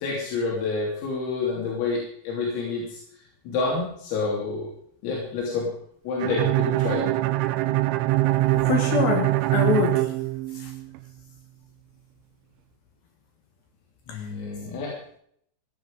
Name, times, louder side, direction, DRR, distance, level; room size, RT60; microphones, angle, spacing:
voice 1, 0.0-3.0 3.5-4.7 5.0-5.7 6.1-7.0 14.1-15.0, left 4 dB, 85° left, -4 dB, 5.9 m, -28 dB
Bowed string instrument, 6.2-11.0, right 18 dB, 80° right, 2.8 m, -23 dB
voice 2, 8.5-10.1 10.6-10.7 14.1-14.3, left 6 dB, 65° left, 4 dB, 2.7 m, -25 dB
16.5 x 11.0 x 5.3 m, 0.65 s
omnidirectional pair, 5.9 m